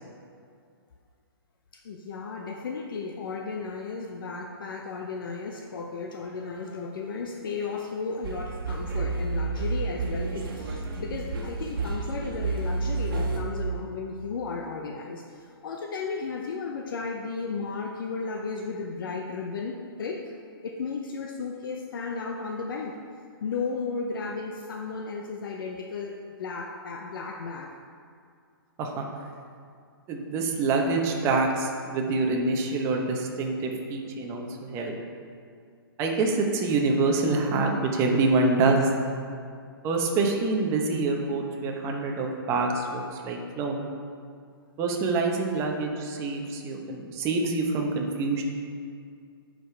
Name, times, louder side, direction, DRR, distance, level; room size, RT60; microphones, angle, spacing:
voice 1, 1.8-15.2 15.6-20.3 20.6-23.0 23.4-27.7, left 4 dB, 60° left, 2 dB, 0.6 m, -34 dB
sound 1, 8.2-13.4, right 3 dB, 60° right, 1.3 m, -30 dB
voice 2, 30.1-34.9 36.0-38.9 39.8-43.8 44.8-48.4, right 3 dB, 20° right, 1 dB, 0.9 m, -26 dB
11.5 x 5.1 x 3.3 m, 2.3 s
hypercardioid pair, 145°, 13 cm